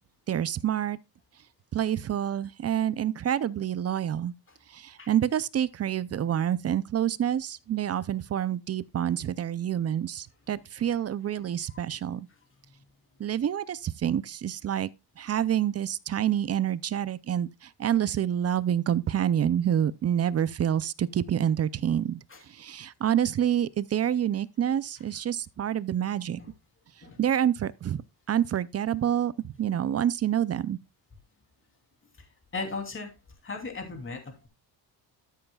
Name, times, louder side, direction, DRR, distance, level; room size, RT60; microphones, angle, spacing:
voice 1, 0.3-1.0 1.7-4.3 4.7-12.3 13.2-14.9 15.2-17.5 17.8-22.2 22.6-26.4 27.2-28.0 28.3-30.8, right 10 dB, 35° right, 0.5 m, -27 dB
voice 2, 10.6-10.9 11.7-12.2 22.3-22.4 26.4-26.5 27.0-27.2 32.5-33.1 33.4-34.5, left 4 dB, 25° left, 3.0 m, -38 dB
13.0 x 7.9 x 2.3 m
cardioid pair, 120°, 46 cm